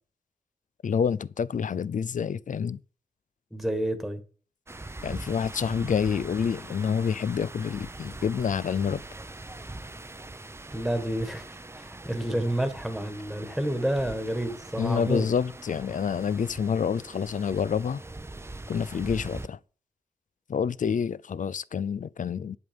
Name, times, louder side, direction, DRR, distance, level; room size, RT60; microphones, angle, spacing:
voice 1, 0.8-2.8 5.0-9.0 14.8-18.0 18.7-19.6 20.5-22.6, left 7 dB, 55° left, 0.5 m, -28 dB
voice 2, 3.5-4.2 10.7-15.3, right 1 dB, ahead, 1.7 m, -29 dB
sound 1, 4.7-19.5, right 2 dB, 15° right, 0.7 m, -42 dB
11.0 x 8.1 x 5.3 m
wide cardioid pair, 100°, 16 cm